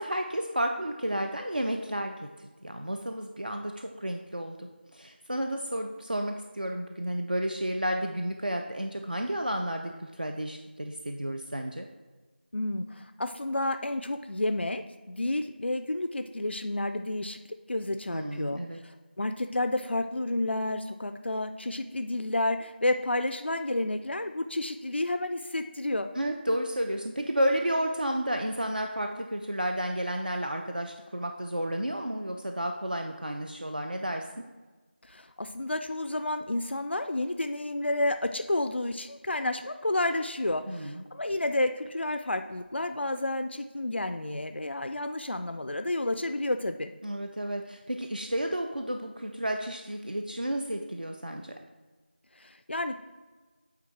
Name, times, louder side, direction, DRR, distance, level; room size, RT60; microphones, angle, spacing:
voice 1, 0.0-2.1 2.6-4.6 4.9-11.9 18.1-18.8 26.1-34.4 40.7-41.0 47.0-51.5, right 1 dB, 55° right, 3 dB, 0.5 m, -31 dB
voice 2, 12.5-17.4 17.7-26.1 35.0-46.9 52.4-53.0, left 1 dB, 75° left, 8 dB, 0.4 m, -30 dB
8.6 x 3.6 x 4.4 m, 1.3 s
figure-of-eight pair, 180°, 6 cm